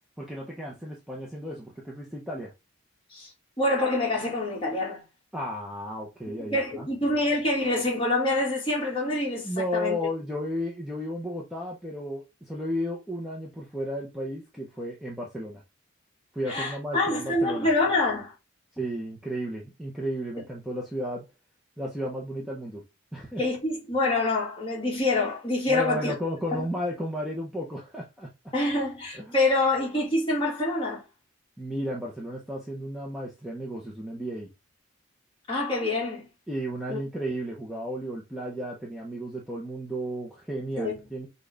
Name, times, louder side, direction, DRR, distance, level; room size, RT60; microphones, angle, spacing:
voice 1, 0.2-2.5 5.3-6.9 9.4-15.6 16.3-17.7 18.8-21.2 21.8-22.8 23.1-23.4 25.7-28.3 29.1-29.4 31.6-34.5 36.5-41.3, equal, ahead, 0.8 m, -33 dB
voice 2, 3.6-5.0 6.4-10.0 16.5-18.3 23.4-26.1 26.5-26.6 28.5-31.0 35.5-36.3 36.9-37.0 40.8-40.9, left 2 dB, 25° left, 1.9 m, -26 dB
6.1 x 2.5 x 3.4 m
head